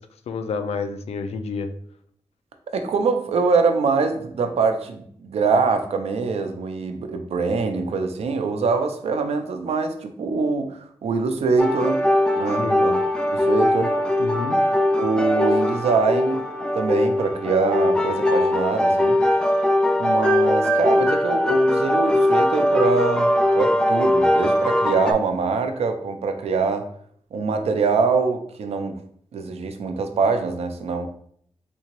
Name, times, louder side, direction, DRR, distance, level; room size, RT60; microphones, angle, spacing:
voice 1, 0.3-1.7 12.6-12.9 14.2-14.6, left 5 dB, 85° left, 8 dB, 0.4 m, -29 dB
voice 2, 2.7-12.0 12.4-14.0 14.9-16.4 16.7-19.2 20.0-26.9 27.3-29.0 29.3-31.1, right 4 dB, 85° right, 7 dB, 0.5 m, -24 dB
sound 1, 11.6-25.1, left 1 dB, 10° left, 0.4 m, -20 dB
3.4 x 2.8 x 3.0 m, 0.64 s
wide cardioid pair, 120°, 10 cm